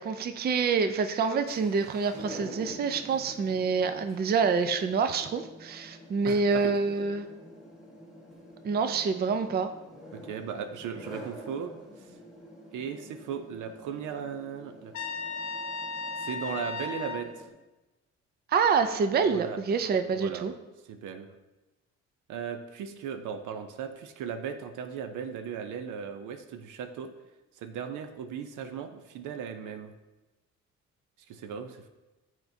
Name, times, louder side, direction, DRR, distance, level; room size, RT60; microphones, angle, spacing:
voice 1, 0.0-7.3 8.6-9.7 18.5-20.5, right 5 dB, 35° right, 9 dB, 0.4 m, -27 dB
sound 1, 1.2-17.5, equal, ahead, 1.5 m, -48 dB
voice 2, 6.2-6.7 10.1-11.7 12.7-14.9 16.2-17.5 19.2-19.6 20.1-20.5 20.8-21.3 22.3-27.1 27.6-29.9 31.3-31.9, right 7 dB, 80° right, 8 dB, 0.6 m, -37 dB
Trumpet, 14.9-17.3, left 4 dB, 75° left, 0.7 m, -35 dB
7.7 x 4.5 x 2.7 m, 1.1 s
cardioid pair, 90°, 30 cm